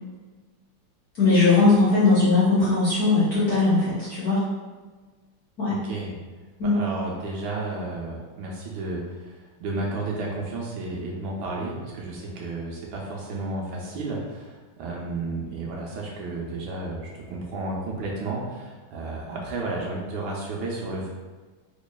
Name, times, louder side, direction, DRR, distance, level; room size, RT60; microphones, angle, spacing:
voice 1, 1.2-4.5 5.6-5.8 6.6-6.8, left 3 dB, 60° left, -9 dB, 1.0 m, -19 dB
voice 2, 5.7-6.1 6.6-21.1, right 2 dB, 75° right, -3 dB, 1.4 m, -32 dB
4.1 x 3.0 x 2.2 m, 1.4 s
omnidirectional pair, 2.4 m